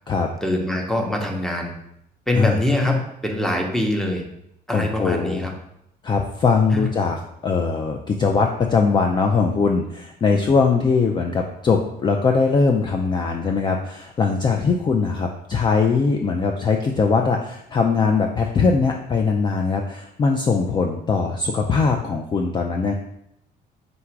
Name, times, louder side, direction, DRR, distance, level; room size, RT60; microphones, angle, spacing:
voice 1, 0.4-1.7 2.3-4.2 4.7-5.5 6.7-6.9, left 1 dB, 5° left, 2 dB, 0.7 m, -23 dB
voice 2, 4.7-5.5 6.0-22.9, left 4 dB, 25° left, 2 dB, 0.3 m, -21 dB
3.9 x 2.4 x 4.5 m, 0.77 s
cardioid pair, 110°, 17 cm